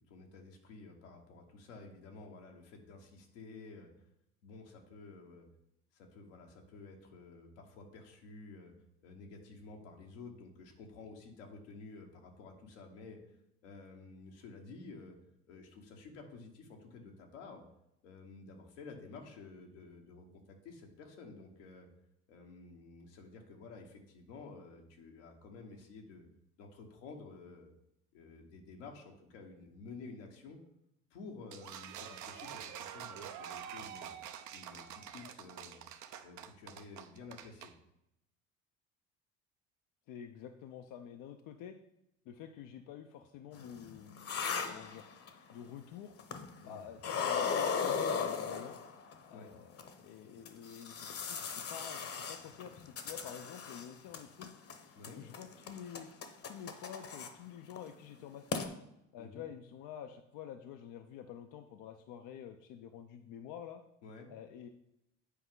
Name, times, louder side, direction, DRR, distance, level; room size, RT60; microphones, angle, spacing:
voice 1, 0.0-4.1 4.4-5.5 5.9-8.7 9.0-13.2 13.6-15.2 15.5-17.6 18.0-21.9 22.3-26.2 26.6-27.7 28.1-30.6 31.1-34.2 34.5-35.8 36.2-37.7 46.6-46.8 49.3-49.5 54.9-55.2 59.2-59.5 64.0-64.3, left 3 dB, 85° left, 1 dB, 1.4 m, -51 dB
sound 1, 31.5-37.7, right 9 dB, 55° right, 0.7 m, -47 dB
voice 2, 40.1-41.8 42.2-44.4 44.7-45.0 45.5-46.1 46.6-48.8 49.3-54.5 55.2-56.1 56.5-58.7 59.1-63.8 64.3-64.7, left 9 dB, 65° left, 6 dB, 0.6 m, -49 dB
sound 2, 43.6-45.5 46.2-46.7 47.0-49.1 49.8-49.9 50.4-53.9 54.1-54.8 55.0-57.3 57.7-57.9 58.2-58.3 58.5-58.7, left 6 dB, 40° left, 1.0 m, -37 dB
8.4 x 4.8 x 3.8 m, 0.83 s
hypercardioid pair, 70°, 35 cm